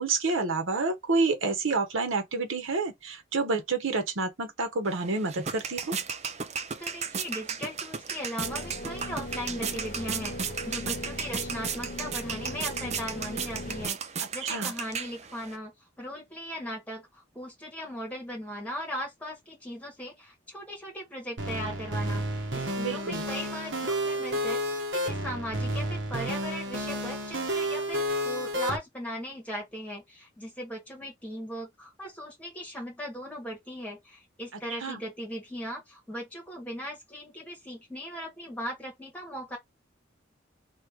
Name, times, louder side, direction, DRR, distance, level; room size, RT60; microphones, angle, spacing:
voice 1, 0.0-6.0 14.4-14.7 22.8-23.2 34.8-35.0, right 3 dB, 90° right, 1.1 m, -29 dB
sound 1, 4.9-15.6, right 6 dB, 35° right, 0.5 m, -35 dB
voice 2, 6.8-14.0 14.3-15.7 16.0-24.6 24.9-39.6, equal, 5° left, 1.7 m, -38 dB
sound 2, 8.4-13.9, left 1 dB, 40° left, 0.6 m, -39 dB
sound 3, 21.4-28.8, equal, 65° right, 1.2 m, -31 dB
3.2 x 2.9 x 4.6 m
head